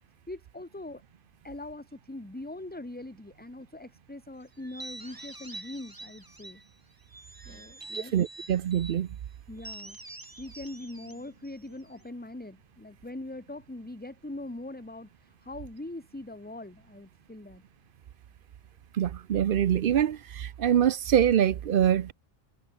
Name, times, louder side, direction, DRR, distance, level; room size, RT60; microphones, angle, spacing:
voice 1, 0.3-1.0 1.4-6.6 7.4-8.1 9.5-10.0 10.4-17.6, left 2 dB, 10° left, 1.0 m, -42 dB
sound 1, 4.6-6.7 7.1-9.0 9.6-12.1, right 2 dB, 20° right, 1.4 m, -45 dB
voice 2, 8.1-9.1 18.9-22.1, right 10 dB, 60° right, 0.7 m, -24 dB
omnidirectional pair, 1.2 m